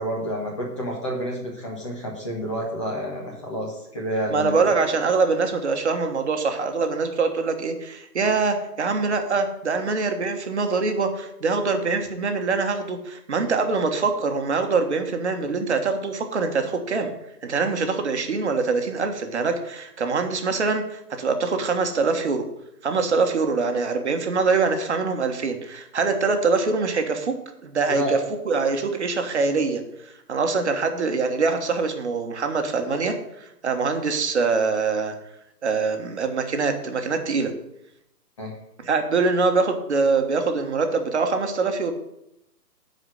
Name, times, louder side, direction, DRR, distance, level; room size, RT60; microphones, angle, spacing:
voice 1, 0.0-4.5 27.9-28.4 38.4-38.5, equal, 20° left, -2 dB, 1.4 m, -29 dB
voice 2, 4.3-17.1 17.4-22.4 22.8-27.3 27.6-28.2 28.5-29.8 30.3-35.1 35.6-37.5 38.8-41.9, right 4 dB, 45° right, 5 dB, 1.5 m, -24 dB
11.0 x 4.9 x 7.8 m, 0.82 s
hypercardioid pair, 175°, 49 cm